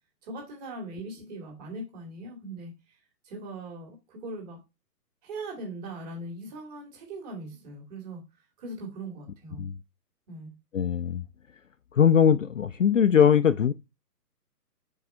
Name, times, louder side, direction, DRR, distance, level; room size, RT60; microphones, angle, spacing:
voice 1, 0.2-2.7 3.2-4.6 5.2-8.2 8.6-9.7 10.3-10.5, right 2 dB, 25° right, 2.3 m, -40 dB
voice 2, 10.7-11.2 11.9-13.7, left 8 dB, 55° left, 0.5 m, -21 dB
5.0 x 4.7 x 4.4 m
figure-of-eight pair, 140°, 49 cm